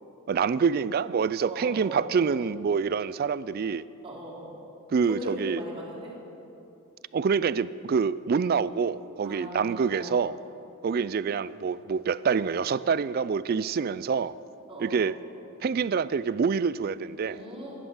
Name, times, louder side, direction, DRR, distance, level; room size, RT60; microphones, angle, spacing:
voice 1, 0.3-3.8 4.9-5.6 7.1-10.4 10.8-14.3 14.8-15.2 15.6-17.4, right 6 dB, 45° right, 17 dB, 0.3 m, -26 dB
voice 2, 1.5-2.0 4.0-4.5 5.1-6.1 9.2-10.2 14.7-15.0 17.2-17.8, right 1 dB, 25° right, -5 dB, 3.2 m, -39 dB
14.0 x 11.0 x 6.4 m, 2.8 s
head